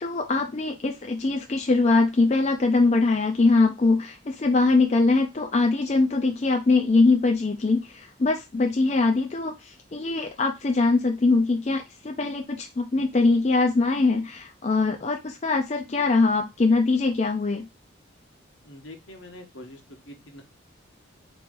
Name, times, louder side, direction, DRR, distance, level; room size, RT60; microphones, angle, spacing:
voice 1, 0.0-17.7, left 3 dB, 35° left, 4 dB, 0.4 m, -22 dB
voice 2, 18.6-19.8 20.1-20.4, left 1 dB, 70° left, 3 dB, 1.1 m, -44 dB
3.9 x 3.0 x 3.6 m, 0.24 s
head